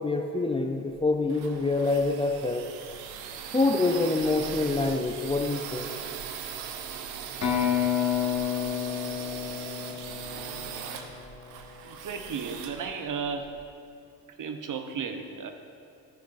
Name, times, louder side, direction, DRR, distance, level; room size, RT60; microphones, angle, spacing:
voice 1, 0.0-2.6 3.5-5.9, left 3 dB, 10° left, 3 dB, 0.6 m, -26 dB
sound 1, 1.2-13.6, right 7 dB, 75° right, 0.9 m, -40 dB
sound 2, 7.4-11.2, left 9 dB, 35° left, 1.9 m, -29 dB
voice 2, 11.8-13.5 14.4-15.5, right 6 dB, 40° right, 6 dB, 1.0 m, -34 dB
13.5 x 10.0 x 2.7 m, 2.5 s
hypercardioid pair, 45°, 49 cm